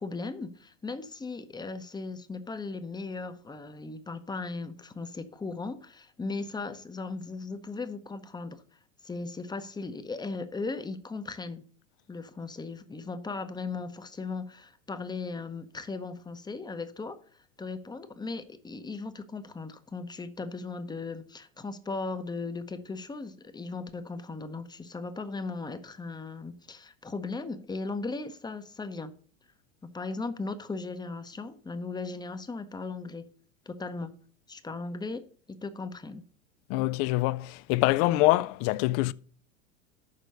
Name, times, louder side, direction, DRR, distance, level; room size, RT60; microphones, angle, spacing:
voice 1, 0.0-8.6 9.0-11.6 12.1-17.2 17.6-29.1 29.9-33.2 33.7-34.1 34.5-35.2 35.6-36.2, left 3 dB, 10° left, 0.8 m, -37 dB
voice 2, 36.7-39.1, left 18 dB, 40° left, 0.4 m, -25 dB
6.7 x 5.0 x 6.6 m
hypercardioid pair, 90°, 39 cm